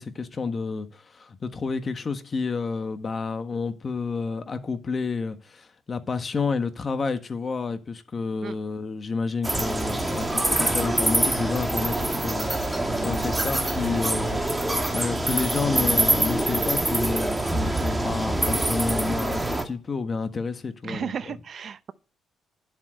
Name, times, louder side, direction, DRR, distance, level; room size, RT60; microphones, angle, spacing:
voice 1, 0.0-21.4, left 4 dB, 40° left, 1.6 m, -30 dB
sound 1, 9.4-19.6, right 1 dB, 10° right, 2.1 m, -25 dB
voice 2, 20.8-21.9, right 7 dB, 50° right, 0.8 m, -33 dB
11.0 x 7.9 x 6.5 m
cardioid pair, 90°, 0 cm